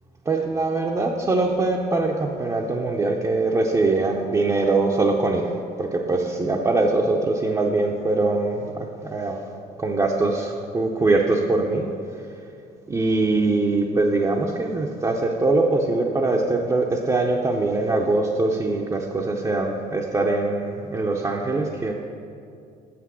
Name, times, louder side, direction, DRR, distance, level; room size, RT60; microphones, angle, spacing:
voice 1, 0.3-5.5 5.8-9.4 9.8-11.9 12.9-21.9, right 2 dB, 20° right, -1 dB, 0.6 m, -22 dB
7.6 x 5.9 x 6.2 m, 2.5 s
cardioid pair, 110°, 17 cm